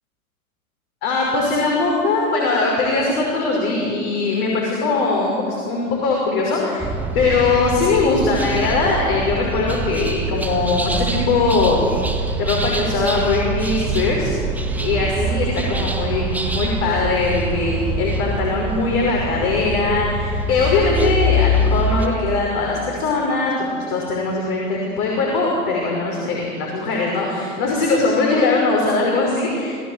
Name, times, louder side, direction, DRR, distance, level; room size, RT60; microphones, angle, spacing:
voice 1, 1.0-6.8 7.1-11.8 12.4-14.3 14.8-29.7, left 3 dB, 40° left, -2 dB, 5.6 m, -20 dB
sound 1, 6.8-22.1, right 1 dB, 5° right, 1.6 m, -24 dB
27.5 x 17.0 x 8.2 m, 2.2 s
figure-of-eight pair, 105°, 43 cm